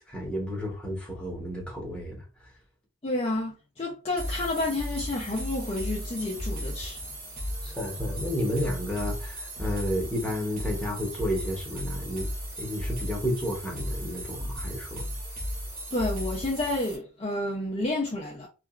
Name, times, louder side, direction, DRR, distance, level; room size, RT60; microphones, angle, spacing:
voice 1, 0.1-2.2 7.6-12.3 12.6-15.1, equal, 5° left, 0.8 m, -31 dB
voice 2, 3.0-7.0 15.9-18.5, left 2 dB, 25° left, 0.4 m, -30 dB
sound 1, 4.2-17.0, equal, 35° right, 1.0 m, -35 dB
2.8 x 2.3 x 2.4 m
head